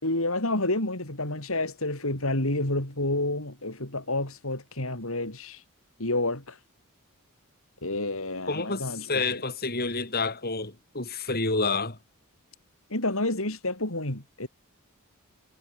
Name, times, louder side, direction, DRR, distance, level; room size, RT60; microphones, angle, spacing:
voice 1, 0.0-5.6 6.0-6.6 7.8-9.4 12.9-14.5, left 2 dB, 65° left, 5.3 m, -29 dB
voice 2, 8.5-12.0, left 3 dB, 45° left, 7.7 m, -29 dB
head